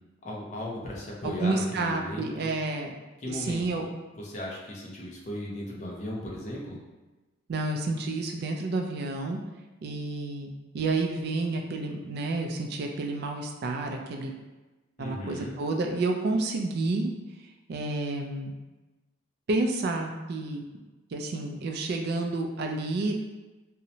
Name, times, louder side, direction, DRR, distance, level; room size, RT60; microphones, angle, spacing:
voice 1, 0.2-2.5 3.2-3.9 4.1-6.8 15.0-15.6, left 1 dB, 35° left, -3 dB, 0.5 m, -37 dB
voice 2, 1.2-2.9 3.3-3.8 7.5-9.4 9.8-14.3 15.0-17.1 17.7-18.5 19.5-20.6 21.1-23.1, right 2 dB, 55° right, 2 dB, 0.3 m, -30 dB
2.7 x 2.0 x 2.7 m, 1.2 s
head